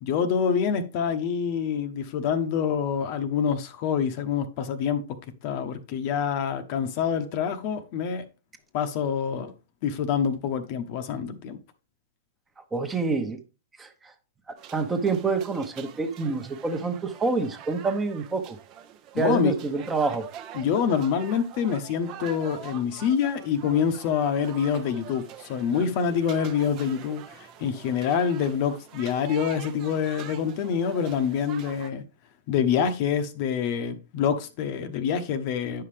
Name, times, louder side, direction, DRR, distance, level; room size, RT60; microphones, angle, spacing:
voice 1, 0.0-5.0 5.4-8.2 8.7-9.5 9.8-11.6 19.1-19.5 20.5-32.0 32.5-35.8, left 7 dB, 50° left, 0.9 m, -26 dB
voice 2, 12.7-13.4 13.8-14.1 14.5-18.6 19.2-20.3, right 4 dB, 15° right, 1.1 m, -27 dB
sound 1, 14.6-31.9, right 9 dB, 40° right, 0.8 m, -45 dB
9.3 x 5.7 x 3.3 m
hypercardioid pair, 120°, 0 cm